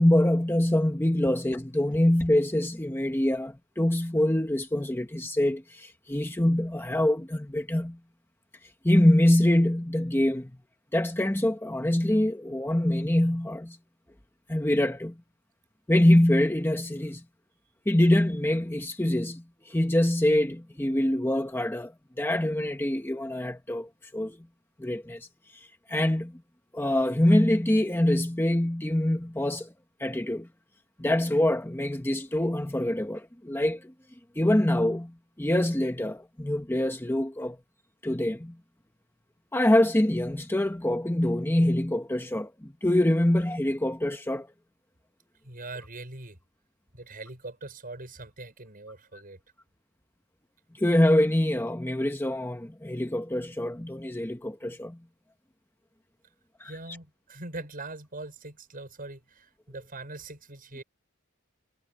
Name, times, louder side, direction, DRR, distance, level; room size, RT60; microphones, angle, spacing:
voice 1, 0.0-8.0 8.8-10.5 10.9-13.8 14.5-15.2 15.9-17.2 17.9-21.9 22.2-24.4 24.8-25.3 25.5-26.4 26.7-29.7 30.0-30.5 31.0-33.9 34.4-37.6 38.0-38.6 39.5-44.5 50.8-55.0 56.6-56.7, left 1 dB, 10° left, 1.0 m, -25 dB
voice 2, 45.4-46.4 46.9-49.4 56.6-60.8, right 2 dB, 40° right, 5.6 m, -42 dB
head